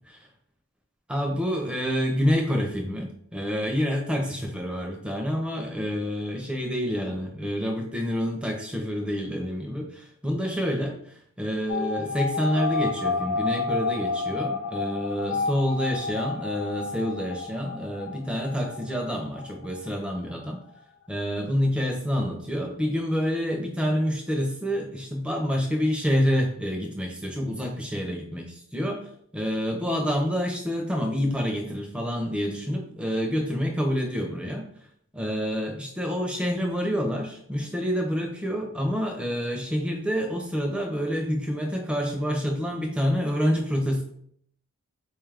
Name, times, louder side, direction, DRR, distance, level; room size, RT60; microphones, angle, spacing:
voice 1, 1.1-11.0 11.4-20.6 21.1-29.0 29.3-34.7 35.1-44.0, equal, 5° right, 1 dB, 0.4 m, -27 dB
sound 1, 11.7-20.2 20.5-20.6 20.8-20.9, left 4 dB, 85° left, 0.6 m, -30 dB
4.0 x 2.3 x 3.3 m, 0.65 s
head